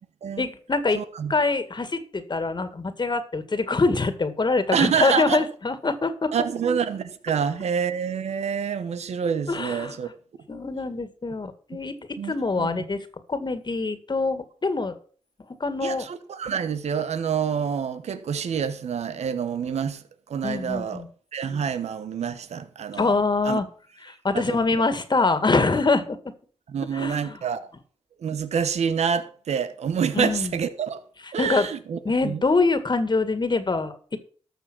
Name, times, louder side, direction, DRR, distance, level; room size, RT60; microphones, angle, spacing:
voice 1, 0.4-1.0 1.3-6.3 9.5-10.0 10.5-15.0 15.6-16.1 20.4-21.1 22.9-23.7 24.0-26.2 26.9-27.4 30.1-30.5 31.4-31.7 32.0-34.2, left 3 dB, 40° left, 1.9 m, -24 dB
voice 2, 0.9-1.3 4.7-5.4 6.3-10.1 12.2-12.9 15.8-21.0 21.3-23.2 23.4-23.6 24.3-24.7 26.7-27.7 28.2-31.0 31.3-32.4, right 7 dB, 75° right, 1.1 m, -27 dB
13.0 x 6.7 x 6.2 m
cardioid pair, 50°, 11 cm